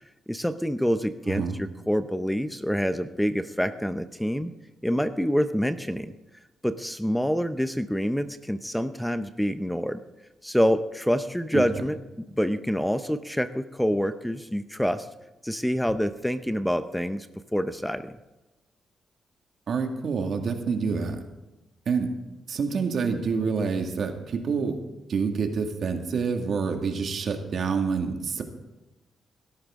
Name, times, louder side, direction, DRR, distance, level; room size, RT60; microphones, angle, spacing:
voice 1, 0.3-4.5 4.8-6.1 6.6-10.0 10.4-12.0 12.4-15.1 15.4-17.3 17.5-18.1, equal, 5° left, 11 dB, 0.7 m, -26 dB
voice 2, 1.3-1.6 11.5-11.6 19.7-21.2 21.9-22.1 22.5-24.8 25.1-28.4, right 5 dB, 60° right, 4 dB, 2.0 m, -27 dB
16.5 x 13.0 x 3.7 m, 1.0 s
cardioid pair, 75°, 0 cm